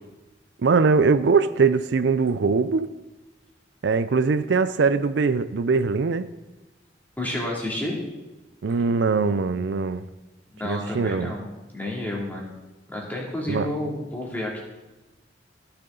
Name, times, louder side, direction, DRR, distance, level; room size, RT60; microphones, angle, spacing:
voice 1, 0.6-2.9 3.8-6.3 8.6-10.0 10.6-11.3 13.5-13.7, right 4 dB, 70° right, 0.4 m, -21 dB
voice 2, 7.2-8.0 10.5-11.4 11.7-12.5 12.9-14.6, left 1 dB, 10° left, 2.5 m, -30 dB
15.0 x 7.0 x 3.9 m
head